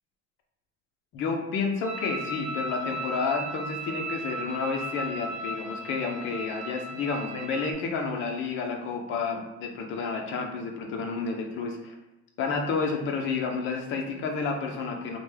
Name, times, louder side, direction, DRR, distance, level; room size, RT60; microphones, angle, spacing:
voice 1, 1.1-11.9 12.4-15.2, left 4 dB, 35° left, 2 dB, 0.5 m, -30 dB
sound 1, 1.8-7.7, right 1 dB, 50° right, 0.7 m, -36 dB
3.2 x 2.2 x 3.1 m, 0.95 s
cardioid pair, 165°, 33 cm